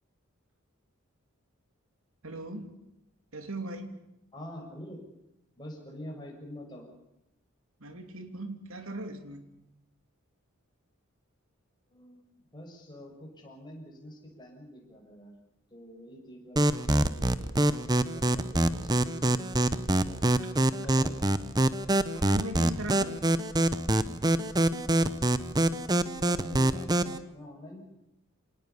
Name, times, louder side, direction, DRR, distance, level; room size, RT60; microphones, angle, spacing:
voice 1, 2.2-2.8 3.3-4.0 7.8-9.4 22.1-23.2, right 2 dB, 75° right, 7 dB, 3.0 m, -38 dB
voice 2, 4.3-5.0 5.6-6.9 11.9-15.3 15.7-20.3 20.7-21.1 26.1-27.8, equal, 20° left, 0 dB, 6.4 m, -46 dB
sound 1, 16.6-27.2, right 1 dB, 20° right, 0.8 m, -25 dB
26.0 x 19.0 x 7.0 m, 0.85 s
head